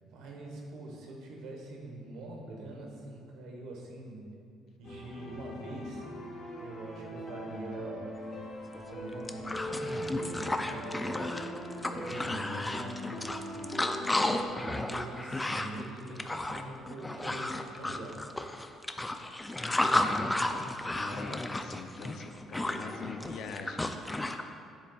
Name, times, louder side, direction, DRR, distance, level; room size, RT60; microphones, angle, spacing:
voice 1, 0.0-4.3 4.8-6.0 6.6-8.1 8.8-11.3 11.9-13.3 14.5-18.2, right 2 dB, 80° right, -1 dB, 1.2 m, -44 dB
sound 1, 4.8-14.5, left 1 dB, 50° left, 1.1 m, -41 dB
sound 2, 8.7-8.8 9.1-24.4, left 1 dB, 15° left, 0.4 m, -33 dB
voice 2, 20.9-24.0, left 4 dB, 70° left, 5 dB, 0.5 m, -43 dB
7.8 x 6.7 x 2.4 m, 2.5 s
cardioid pair, 85°, 0 cm